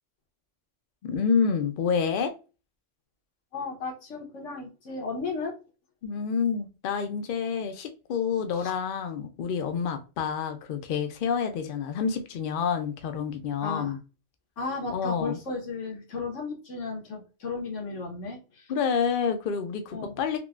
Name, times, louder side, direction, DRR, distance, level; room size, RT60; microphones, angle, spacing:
voice 1, 1.0-2.3 6.0-14.0 14.9-15.4 18.7-20.4, left 6 dB, 60° left, 7 dB, 0.6 m, -28 dB
voice 2, 3.5-5.6 8.5-8.7 13.6-14.0 14.6-18.7 19.9-20.2, left 4 dB, 80° left, 1 dB, 1.3 m, -34 dB
3.7 x 2.1 x 2.3 m, 0.31 s
omnidirectional pair, 1.2 m